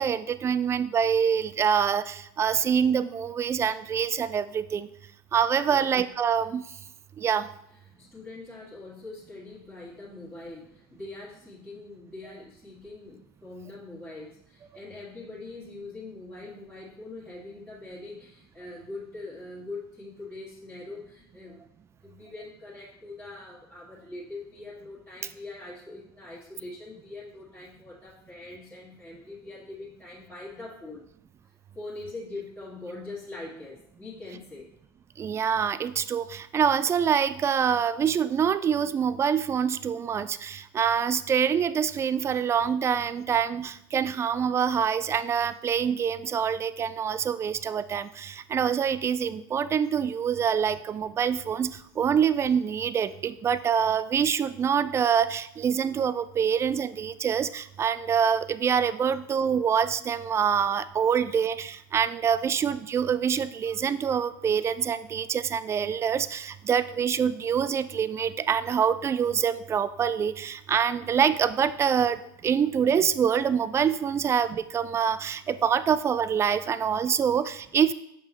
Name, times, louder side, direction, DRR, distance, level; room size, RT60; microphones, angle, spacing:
voice 1, 0.0-4.9 5.3-6.7 7.2-7.5 35.2-77.9, right 7 dB, 20° right, 14 dB, 0.3 m, -25 dB
voice 2, 7.8-21.6 22.0-31.0 31.7-34.7 62.5-62.6 77.3-77.4, left 2 dB, 5° left, -10 dB, 1.9 m, -42 dB
6.8 x 5.5 x 3.0 m, 0.78 s
hypercardioid pair, 85°, 13 cm